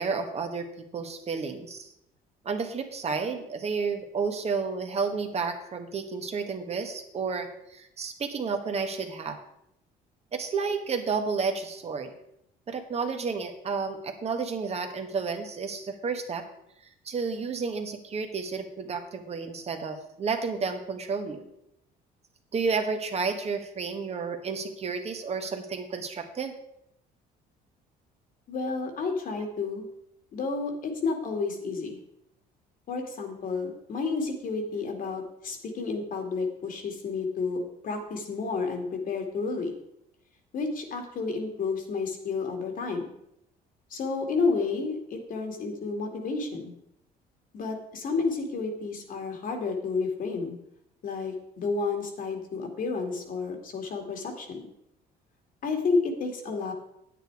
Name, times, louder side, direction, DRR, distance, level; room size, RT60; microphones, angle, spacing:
voice 1, 0.0-1.9 2.4-9.4 10.3-12.1 12.7-16.4 17.0-21.5 22.5-26.6, right 5 dB, 40° right, 5 dB, 1.4 m, -31 dB
voice 2, 28.5-29.9 30.3-32.0 32.9-39.8 40.5-43.1 43.9-46.7 47.5-50.6 51.0-54.7 55.6-56.7, left 4 dB, 55° left, 4 dB, 2.3 m, -31 dB
9.1 x 9.0 x 4.7 m, 0.78 s
cardioid pair, 110°, 17 cm